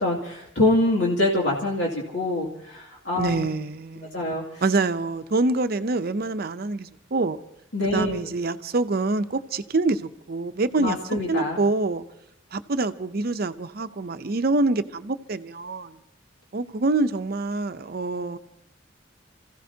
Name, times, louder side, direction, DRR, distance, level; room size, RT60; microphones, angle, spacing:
voice 1, 0.0-3.5 4.1-4.6 7.7-8.3 10.8-11.6, left 1 dB, 70° left, 2.5 m, -25 dB
voice 2, 3.2-4.2 4.6-7.4 7.9-11.0 11.3-12.0 12.5-16.0 16.5-18.4, right 3 dB, 55° right, 0.6 m, -26 dB
29.0 x 15.5 x 2.8 m
head